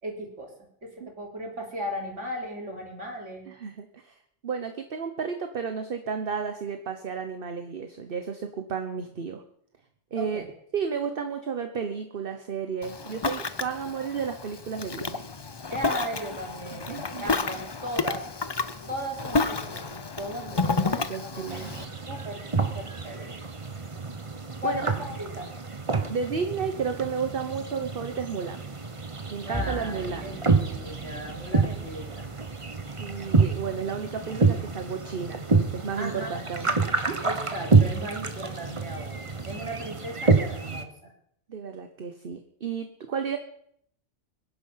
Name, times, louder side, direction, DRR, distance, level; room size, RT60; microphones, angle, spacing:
voice 1, 0.0-3.5 10.1-10.5 15.7-18.3 18.9-23.3 24.6-25.5 29.4-32.3 36.0-36.4 37.2-41.1, equal, 80° right, 0 dB, 3.8 m, -37 dB
voice 2, 3.5-9.4 10.1-10.4 10.7-15.2 16.9-17.2 20.8-21.7 24.6-24.9 26.1-28.6 29.3-30.4 33.0-36.7 37.1-37.2 41.5-43.4, right 6 dB, 50° right, 7 dB, 1.2 m, -32 dB
Ocean, 12.8-21.8, left 3 dB, 25° left, 0.6 m, -31 dB
sound 1, 21.5-40.8, right 4 dB, 25° right, 1.2 m, -28 dB
Bowed string instrument, 29.5-36.0, equal, 5° left, 1.3 m, -42 dB
23.0 x 11.0 x 5.7 m, 0.69 s
omnidirectional pair, 1.2 m